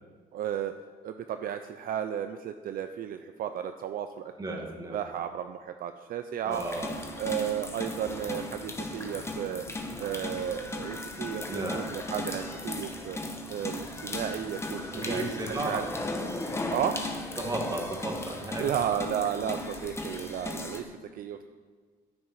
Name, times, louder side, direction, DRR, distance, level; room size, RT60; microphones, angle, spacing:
voice 1, 0.3-0.7 1.0-4.6 4.9-6.6 7.2-9.6 10.0-13.2 13.5-15.3 15.6-15.9 16.7-17.0 18.6-20.8 21.1-21.4, right 9 dB, 60° right, 8 dB, 0.6 m, -33 dB
voice 2, 4.4-5.0 6.4-7.0 11.5-11.9 14.8-15.8 17.4-18.7, right 2 dB, 20° right, 1 dB, 2.5 m, -34 dB
sound 1, 6.5-20.8, left 2 dB, 15° left, 1.4 m, -36 dB
16.0 x 9.5 x 4.9 m, 1.5 s
cardioid pair, 110°, 17 cm